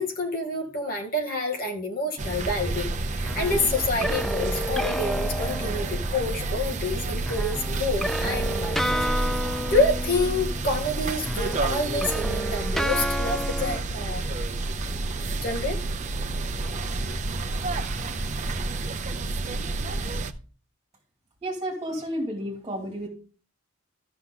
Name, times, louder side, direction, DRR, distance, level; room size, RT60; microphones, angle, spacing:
voice 1, 0.0-9.1 9.7-14.3 15.4-15.8, left 2 dB, 45° left, 2 dB, 2.0 m, -28 dB
sound 1, 2.2-20.3, right 2 dB, 35° right, 0.7 m, -29 dB
sound 2, 3.3-6.3 7.3-10.9 11.2-13.8, equal, ahead, 0.4 m, -31 dB
voice 2, 21.4-23.1, equal, 20° right, -1 dB, 2.6 m, -31 dB
14.0 x 6.0 x 3.8 m, 0.40 s
head